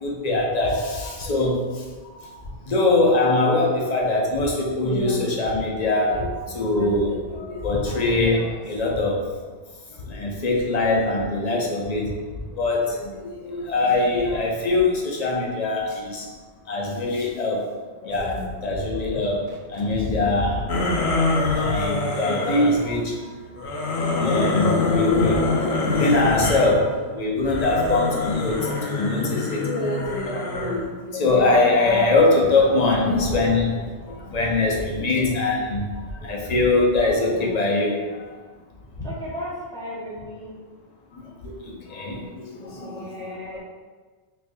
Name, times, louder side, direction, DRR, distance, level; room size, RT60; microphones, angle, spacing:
voice 1, 0.0-2.4 2.7-9.2 10.0-12.1 12.6-16.3 16.7-17.7 18.0-20.8 21.4-23.2 24.1-38.0 39.0-39.1 41.1-43.4, left 2 dB, 50° left, -2 dB, 0.6 m, -23 dB
sound 1, 18.2-27.9, equal, 65° right, 0.3 m, -40 dB
sound 2, 20.7-22.7 23.6-26.7 27.4-30.9, left 3 dB, 75° left, 0.9 m, -25 dB
voice 2, 39.0-40.5 42.8-43.6, equal, 5° left, -7 dB, 0.7 m, -35 dB
4.0 x 2.5 x 2.5 m, 1.4 s
omnidirectional pair, 1.1 m